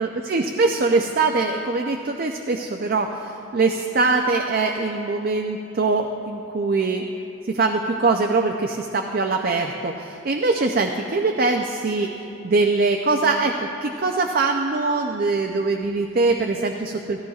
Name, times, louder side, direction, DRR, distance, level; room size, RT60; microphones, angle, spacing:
voice 1, 0.0-7.0 7.5-12.1 12.4-17.2, right 3 dB, 45° right, 3 dB, 0.4 m, -22 dB
14.0 x 14.0 x 2.4 m, 2.7 s
head